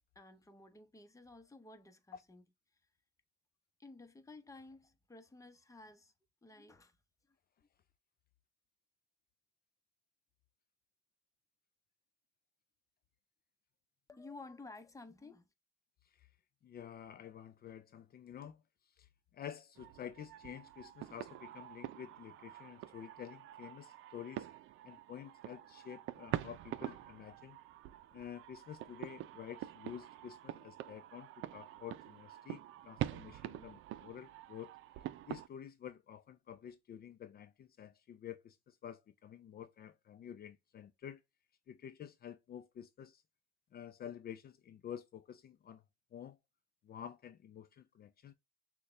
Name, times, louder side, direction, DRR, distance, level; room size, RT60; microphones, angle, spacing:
voice 1, 0.1-2.4 2.7-2.8 3.8-6.1 6.4-7.0 7.3-7.4 14.1-15.4, left 3 dB, 15° left, 0.9 m, -54 dB
voice 2, 16.6-24.5 24.8-27.6 28.1-34.7 35.3-41.2 41.7-43.2 43.7-45.8 46.1-46.4 46.8-48.3, left 9 dB, 50° left, 0.5 m, -50 dB
sound 1, 19.8-35.5, right 14 dB, 85° right, 0.5 m, -46 dB
6.4 x 2.3 x 3.2 m
cardioid pair, 90°, 20 cm